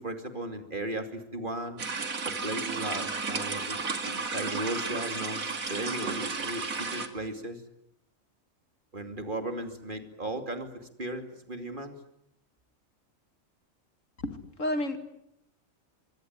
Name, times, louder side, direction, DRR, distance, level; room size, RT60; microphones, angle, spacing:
voice 1, 0.0-1.8 2.2-7.6 8.9-12.0, right 1 dB, 35° right, 7 dB, 2.8 m, -36 dB
sound 1, 1.8-7.1, right 4 dB, 85° right, 2.7 m, -33 dB
voice 2, 14.2-15.0, left 1 dB, 65° left, 8 dB, 2.8 m, -31 dB
25.0 x 24.5 x 9.5 m, 0.79 s
omnidirectional pair, 1.4 m